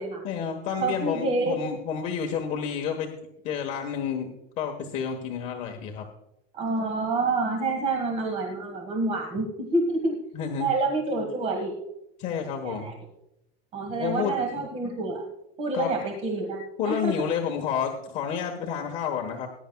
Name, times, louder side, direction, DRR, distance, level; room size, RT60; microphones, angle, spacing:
voice 1, 0.2-3.1 3.4-4.3 4.6-6.0 10.3-10.7 12.2-12.9 14.0-14.6 15.7-15.9 16.8-19.5, left 7 dB, 40° left, 2 dB, 1.2 m, -30 dB
voice 2, 0.8-1.6 6.5-10.1 10.6-11.7 12.6-12.9 13.7-15.2 15.6-17.1, right 2 dB, 35° right, 2 dB, 1.6 m, -28 dB
19.5 x 10.5 x 2.3 m, 0.87 s
cardioid pair, 175°, 19 cm